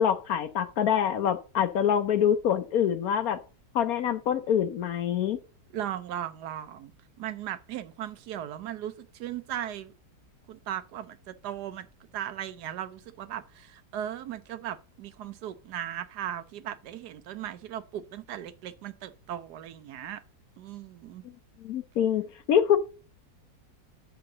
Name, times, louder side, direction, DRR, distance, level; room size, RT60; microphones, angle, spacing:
voice 1, 0.0-3.4 3.7-5.4 21.6-22.2 22.5-22.8, left 9 dB, 65° left, 1.1 m, -25 dB
voice 2, 5.7-6.9 7.2-9.9 10.5-11.9 12.1-20.2 20.6-21.2, right 11 dB, 75° right, 1.2 m, -37 dB
7.9 x 3.8 x 6.4 m
omnidirectional pair, 1.8 m